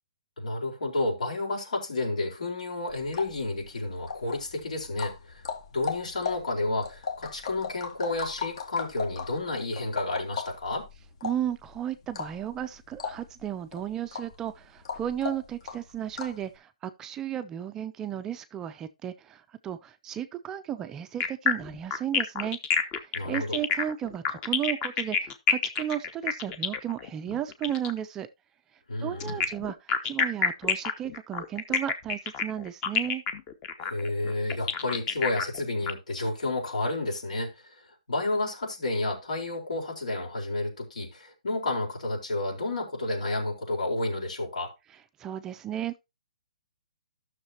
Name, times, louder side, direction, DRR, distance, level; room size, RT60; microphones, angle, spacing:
voice 1, 0.4-5.4 5.7-10.9 23.1-23.6 28.9-29.4 33.8-37.7 38.1-44.7, left 2 dB, 75° left, 4.3 m, -31 dB
sound 1, 2.9-16.5, left 5 dB, 55° left, 1.7 m, -38 dB
voice 2, 11.2-22.6 23.0-28.3 29.0-33.2 45.2-46.0, right 10 dB, 15° right, 0.3 m, -34 dB
sound 2, 21.2-28.0 29.2-35.9, left 6 dB, 20° left, 0.8 m, -28 dB
12.5 x 6.4 x 2.8 m
hypercardioid pair, 160°, 4 cm